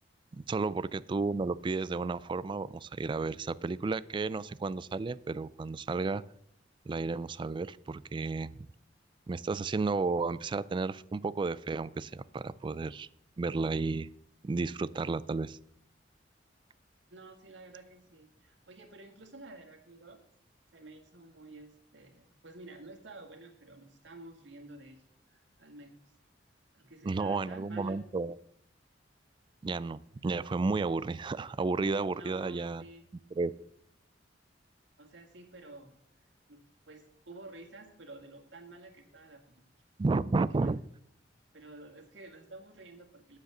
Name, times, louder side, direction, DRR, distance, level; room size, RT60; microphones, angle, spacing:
voice 1, 0.3-6.2 6.9-8.7 9.3-13.1 13.4-14.1 14.4-15.6 27.0-28.3 29.6-32.8 33.4-33.5 40.0-40.8, right 3 dB, 25° right, 18 dB, 0.3 m, -32 dB
voice 2, 17.1-20.2 20.7-26.0 26.7-28.0 32.1-33.0 35.0-35.9 36.5-36.6 36.9-39.6 40.4-40.7 41.5-43.4, right 2 dB, 85° right, 3 dB, 2.0 m, -51 dB
9.0 x 7.4 x 6.6 m, 0.70 s
head